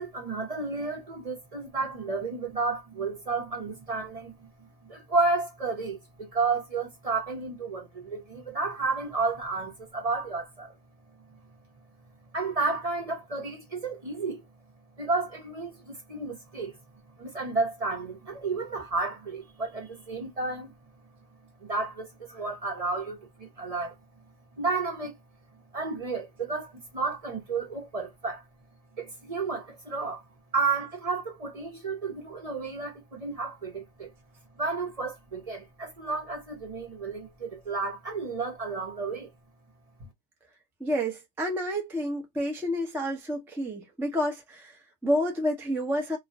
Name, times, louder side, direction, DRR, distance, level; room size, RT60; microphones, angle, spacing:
voice 1, 0.0-10.8 12.3-14.4 15.0-16.8 17.2-20.7 21.6-24.0 24.6-25.2 25.7-28.4 29.0-30.2 30.5-34.1 34.6-39.3, right 3 dB, 35° right, 0.8 m, -32 dB
voice 2, 40.8-46.2, equal, 5° right, 0.5 m, -29 dB
2.5 x 2.2 x 3.8 m
omnidirectional pair, 1.2 m